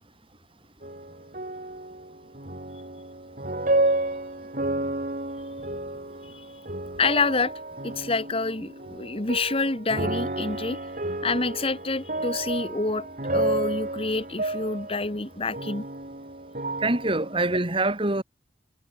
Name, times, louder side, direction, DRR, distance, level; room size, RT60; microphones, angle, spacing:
sound 1, 0.8-17.6, right 2 dB, 50° right, 5.2 m, -31 dB
voice 1, 7.0-7.5 7.8-10.8 11.2-15.8, left 3 dB, 35° left, 1.5 m, -27 dB
voice 2, 16.8-18.2, right 2 dB, 30° right, 2.5 m, -24 dB
head